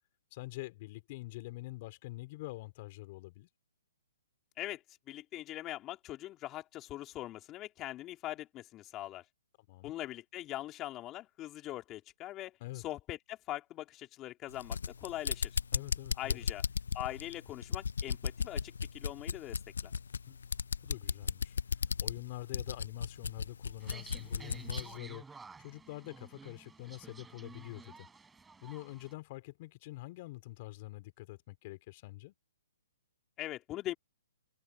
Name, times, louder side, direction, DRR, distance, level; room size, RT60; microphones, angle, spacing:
voice 1, 0.3-3.5 9.6-9.9 12.6-12.8 15.7-16.4 20.3-20.4 20.8-28.1 28.6-32.3, left 20 dB, 40° left, 4.4 m, -46 dB
voice 2, 4.6-9.2 9.8-15.6 16.2-16.6 16.9-19.9 33.4-33.9, left 15 dB, 25° left, 3.7 m, -42 dB
sound 1, 14.5-24.9, left 6 dB, 80° left, 0.6 m, -36 dB
sound 2, 23.8-29.1, right 4 dB, 10° right, 4.8 m, -52 dB
hypercardioid pair, 140°, 0 cm